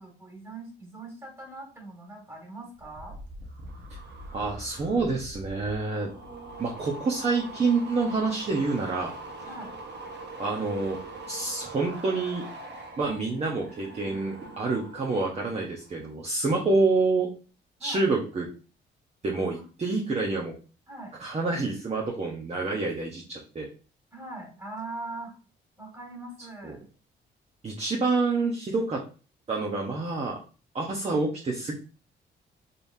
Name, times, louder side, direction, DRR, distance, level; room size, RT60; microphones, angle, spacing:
voice 1, 0.0-3.2 9.4-9.7 17.8-18.0 19.6-20.0 20.9-21.1 24.1-25.3 25.8-26.9, right 2 dB, 15° right, -1 dB, 2.0 m, -41 dB
sound 1, 2.7-15.4 15.7-16.1, right 1 dB, 60° right, 1.2 m, -42 dB
voice 2, 4.3-6.1 6.6-9.1 10.4-11.0 11.3-12.4 13.0-17.3 17.8-18.5 19.2-20.5 21.2-23.7 26.6-26.8 27.6-29.0 29.5-30.4 30.7-31.7, right 3 dB, 30° right, -2 dB, 0.9 m, -27 dB
4.1 x 3.5 x 2.7 m, 0.36 s
cardioid pair, 90°, 20 cm